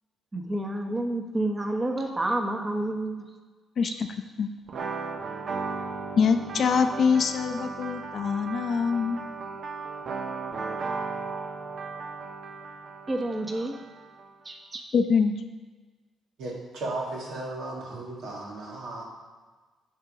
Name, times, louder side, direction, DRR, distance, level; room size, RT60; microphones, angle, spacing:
voice 1, 0.3-3.2 3.8-3.9 13.1-13.8 14.4-14.8, right 1 dB, 25° right, 3 dB, 1.2 m, -29 dB
sound 1, 4.7-14.3, right 4 dB, 60° right, 0.7 m, -36 dB
voice 2, 6.2-9.2 14.9-15.3, left 6 dB, 60° left, 8 dB, 0.6 m, -24 dB
voice 3, 16.4-19.0, right 2 dB, 80° right, -3 dB, 1.8 m, -35 dB
10.5 x 3.6 x 5.1 m, 1.3 s
supercardioid pair, 60°, 0 cm